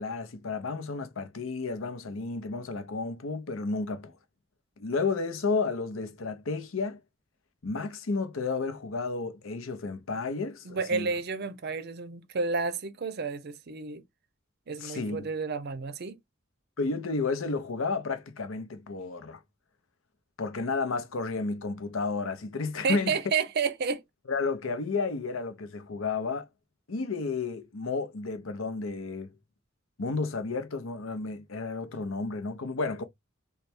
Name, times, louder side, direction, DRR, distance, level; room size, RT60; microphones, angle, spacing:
voice 1, 0.0-4.1 4.8-7.0 7.6-11.1 14.8-15.3 16.8-19.4 20.4-23.2 24.3-26.5 26.9-29.3 30.0-33.0, left 4 dB, 75° left, 0.7 m, -32 dB
voice 2, 10.6-14.0 14.7-16.2 22.8-24.0, right 5 dB, 50° right, 0.5 m, -31 dB
3.3 x 2.2 x 4.3 m
head